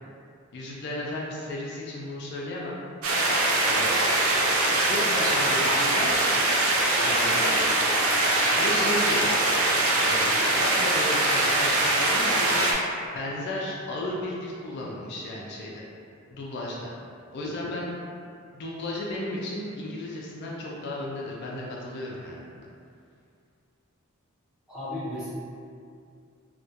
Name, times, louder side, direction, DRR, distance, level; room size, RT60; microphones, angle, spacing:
voice 1, 0.5-2.8 3.7-4.0 4.8-6.3 7.0-7.7 8.4-9.3 10.0-12.6 13.1-15.8 16.3-16.9 17.3-17.9 18.5-22.7, left 1 dB, 55° left, -4 dB, 0.3 m, -34 dB
sound 1, 3.0-12.7, right 2 dB, 85° right, 0.4 m, -23 dB
voice 2, 17.4-17.7 24.7-25.3, left 1 dB, 5° right, -12 dB, 0.7 m, -35 dB
2.2 x 2.1 x 2.7 m, 2.3 s
head